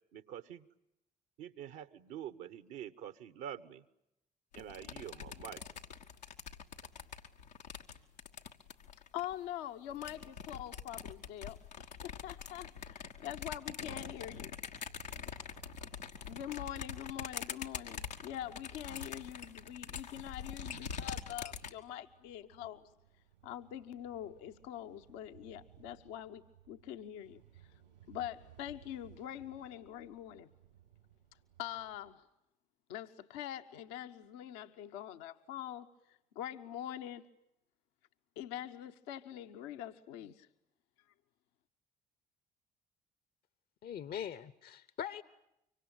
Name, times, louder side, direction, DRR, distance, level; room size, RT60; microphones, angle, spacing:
voice 1, 0.1-0.7 1.4-3.8 4.5-5.6, right 10 dB, 65° right, 13 dB, 1.2 m, -46 dB
sound 1, 4.5-9.3 9.9-21.7, left 6 dB, 85° left, 1.4 m, -44 dB
voice 2, 9.1-14.5 16.3-22.9 23.4-27.4 28.1-30.5 31.6-32.3 32.9-37.2 38.4-40.5, left 11 dB, 70° left, 8 dB, 1.1 m, -44 dB
sound 2, 14.8-32.1, right 11 dB, 90° right, 4.1 m, -62 dB
voice 3, 43.8-45.2, left 9 dB, 50° left, 15 dB, 1.0 m, -41 dB
25.0 x 24.5 x 9.0 m, 0.83 s
figure-of-eight pair, 50°, 21 cm